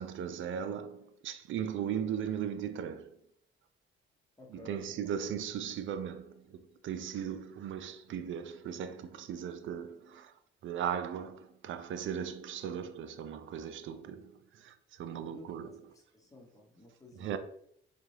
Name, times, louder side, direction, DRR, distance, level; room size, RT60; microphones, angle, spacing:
voice 1, 0.0-3.1 4.5-10.3 10.6-15.8 17.2-17.4, right 8 dB, 70° right, 0.4 m, -38 dB
voice 2, 4.4-4.8 15.1-17.4, left 1 dB, 15° left, 0.9 m, -54 dB
4.1 x 2.2 x 3.2 m
cardioid pair, 80°, 21 cm